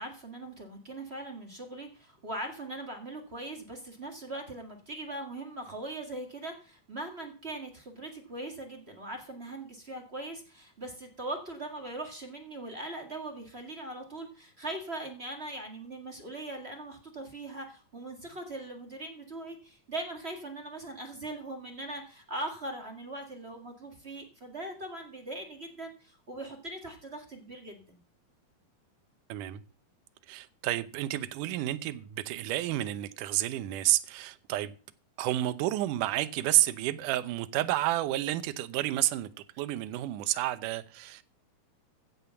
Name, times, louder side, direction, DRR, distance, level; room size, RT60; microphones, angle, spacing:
voice 1, 0.0-28.0, right 2 dB, 35° right, 0.9 m, -40 dB
voice 2, 29.3-29.6 30.3-34.7 35.2-39.3 39.6-41.2, right 15 dB, 75° right, 1.9 m, -30 dB
15.5 x 6.8 x 6.9 m
omnidirectional pair, 4.5 m